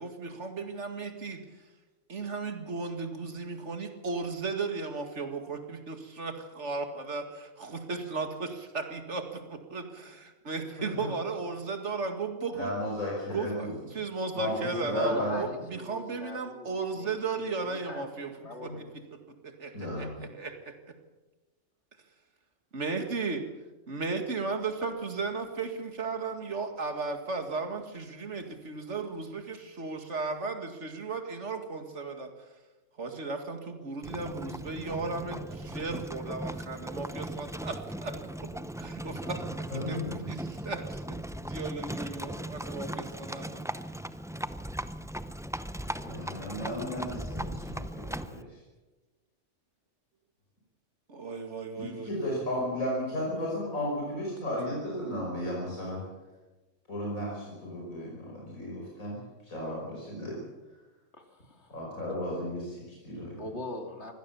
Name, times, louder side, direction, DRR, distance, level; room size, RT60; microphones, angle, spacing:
voice 1, 0.0-1.4 2.1-12.7 13.3-18.3 18.6-18.7 19.4-20.7 22.7-23.4 23.9-32.3 33.0-38.5 38.8-39.5 39.9-43.6 51.1-52.1, right 4 dB, 60° right, 6 dB, 2.4 m, -35 dB
voice 2, 10.8-11.1 12.5-13.8 14.3-15.5 18.6-18.8 19.7-20.3 39.7-40.2 46.0-48.6 51.8-56.0 56.9-60.4 61.7-63.4, left 1 dB, 80° left, -3 dB, 5.8 m, -34 dB
voice 3, 15.0-18.1 18.4-18.8 61.1-61.8 63.4-64.1, left 2 dB, 55° left, 4 dB, 2.9 m, -42 dB
Livestock farm animals working animals, 34.0-48.4, right 1 dB, 5° right, 0.4 m, -38 dB
24.0 x 16.5 x 7.1 m, 1.2 s
omnidirectional pair, 1.4 m